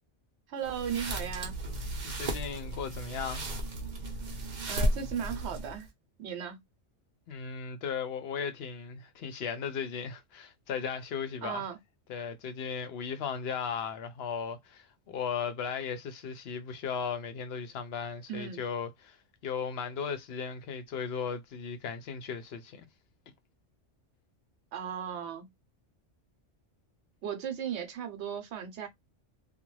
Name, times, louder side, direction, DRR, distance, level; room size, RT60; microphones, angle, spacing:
voice 1, 0.5-1.6 4.7-5.9 6.2-6.6 11.4-11.8 18.3-18.6 24.7-25.5 27.2-28.9, right 8 dB, 65° right, 0.9 m, -36 dB
sound 1, 0.6-5.9, right 1 dB, 45° right, 0.7 m, -34 dB
voice 2, 2.0-3.4 7.3-11.7 12.1-19.2 19.4-22.9, left 6 dB, 60° left, 0.8 m, -36 dB
2.5 x 2.2 x 3.0 m
omnidirectional pair, 1.3 m